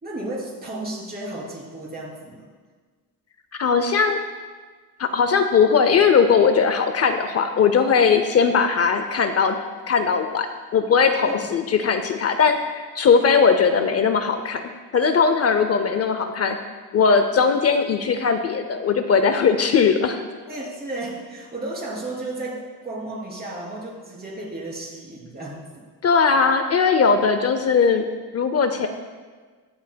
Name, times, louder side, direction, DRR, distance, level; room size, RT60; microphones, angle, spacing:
voice 1, 0.0-2.4 11.2-11.5 20.5-25.8, right 2 dB, 25° right, -5 dB, 3.3 m, -33 dB
voice 2, 3.6-4.2 5.0-9.6 9.9-10.5 10.7-16.6 16.9-20.2 26.0-28.1 28.3-28.9, left 5 dB, 40° left, 8 dB, 0.5 m, -19 dB
20.5 x 7.7 x 2.2 m, 1.4 s
cardioid pair, 155°, 39 cm